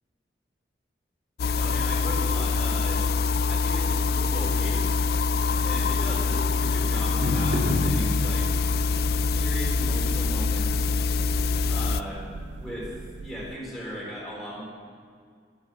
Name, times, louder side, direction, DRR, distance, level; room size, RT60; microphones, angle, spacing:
sound 1, 1.4-12.0, left 4 dB, 55° left, 0.3 m, -25 dB
voice 1, 1.5-3.0 3.5-5.0 5.6-8.5 9.2-11.0 11.7-12.2 12.6-14.6, equal, ahead, -6 dB, 3.9 m, -37 dB
sound 2, 3.4-13.5, left 1 dB, 70° right, 2.8 m, -36 dB
sound 3, 8.5-13.6, right 4 dB, 85° right, 0.4 m, -39 dB
11.0 x 10.0 x 7.7 m, 2.1 s
head